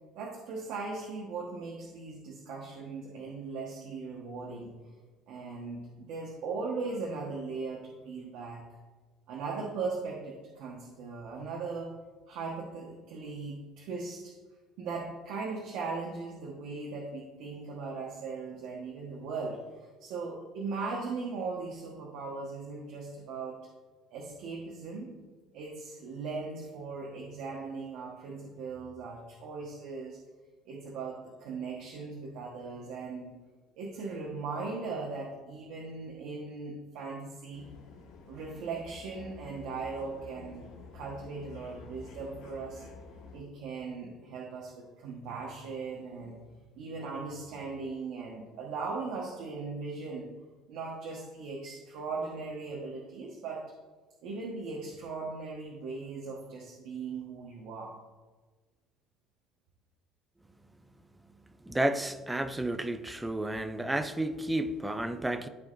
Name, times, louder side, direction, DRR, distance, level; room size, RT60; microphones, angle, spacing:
voice 1, 0.1-4.7 5.3-8.6 9.3-11.9 12.3-14.3 14.8-23.6 24.1-25.1 25.5-30.2 30.6-33.3 33.8-37.6 38.3-40.7 40.9-42.8 43.2-46.4 46.7-50.3 50.7-53.6 54.2-57.9, right 4 dB, 65° right, 1.2 m, -38 dB
sound 1, 37.5-43.4, left 4 dB, 70° left, 1.5 m, -50 dB
voice 2, 61.7-65.5, right 1 dB, 5° right, 0.4 m, -31 dB
13.0 x 4.8 x 2.6 m
cardioid pair, 165°, 0 cm